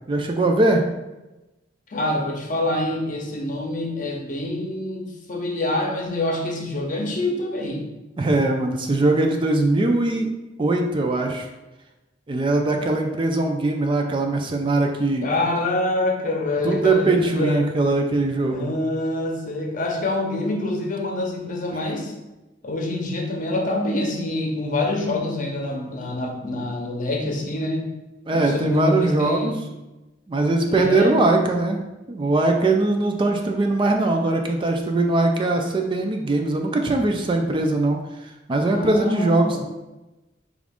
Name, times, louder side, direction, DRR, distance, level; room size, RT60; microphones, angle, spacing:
voice 1, 0.1-0.8 8.2-10.3 10.6-11.5 12.3-15.3 16.6-18.7 28.3-29.6 30.3-31.8 32.1-39.6, right 2 dB, 25° right, 3 dB, 0.4 m, -21 dB
voice 2, 1.9-7.9 15.2-17.7 18.5-22.1 22.6-27.9 28.3-29.5 30.6-31.4 38.7-39.6, left 2 dB, 45° left, 1 dB, 0.7 m, -26 dB
5.0 x 2.4 x 3.5 m, 1.0 s
head